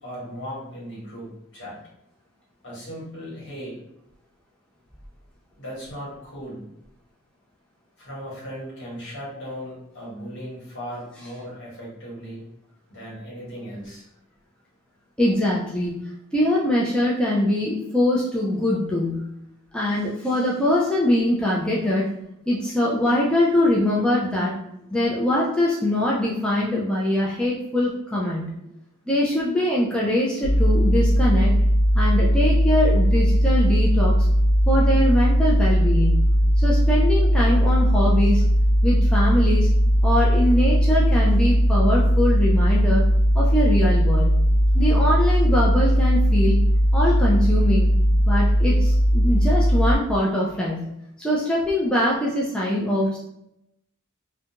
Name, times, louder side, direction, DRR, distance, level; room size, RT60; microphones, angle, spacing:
voice 1, 0.0-1.8 2.6-3.8 5.6-6.7 8.0-12.4 12.9-14.0, equal, 60° left, -6 dB, 1.2 m, -37 dB
voice 2, 15.2-16.0 16.3-19.2 19.7-22.1 22.5-24.5 24.9-28.5 29.1-31.5 31.9-34.1 34.7-36.2 36.6-38.4 38.8-39.7 40.0-43.0 43.3-44.3 44.7-46.6 46.9-47.9 48.3-50.9 51.2-53.2, left 1 dB, 5° left, -6 dB, 0.3 m, -22 dB
sound 1, 30.4-49.9, equal, 85° right, 0.6 m, -18 dB
2.5 x 2.2 x 2.8 m, 0.80 s
head